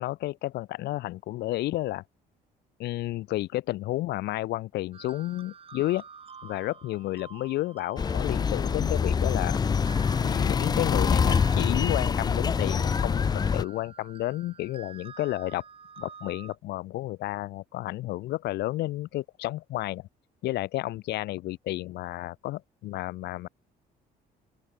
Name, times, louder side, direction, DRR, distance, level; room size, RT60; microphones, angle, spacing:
voice 1, 0.0-2.0 2.8-6.0 6.4-9.6 10.2-15.6 16.0-20.1 20.4-23.5, left 16 dB, 80° left, 2.8 m, -31 dB
sound 1, 4.9-16.6, right 6 dB, 35° right, 6.4 m, -49 dB
sound 2, 8.0-13.6, left 6 dB, 25° left, 0.5 m, -25 dB
open air
cardioid pair, 110°, 17 cm